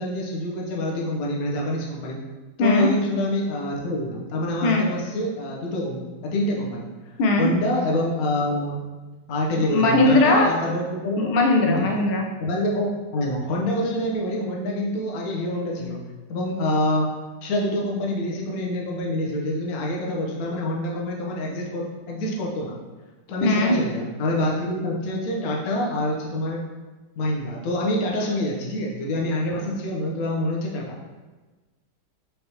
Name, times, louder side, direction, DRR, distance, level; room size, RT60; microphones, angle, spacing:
voice 1, 0.0-2.2 2.6-6.9 7.4-8.8 9.3-11.3 11.6-12.0 12.4-16.0 16.3-17.1 17.4-22.8 23.3-26.6 27.2-31.0, left 1 dB, 60° left, -2 dB, 0.9 m, -26 dB
voice 2, 9.6-10.5 11.2-12.3 23.4-23.8, left 2 dB, 75° left, 2 dB, 1.4 m, -19 dB
5.5 x 3.4 x 2.8 m, 1.2 s
omnidirectional pair, 2.4 m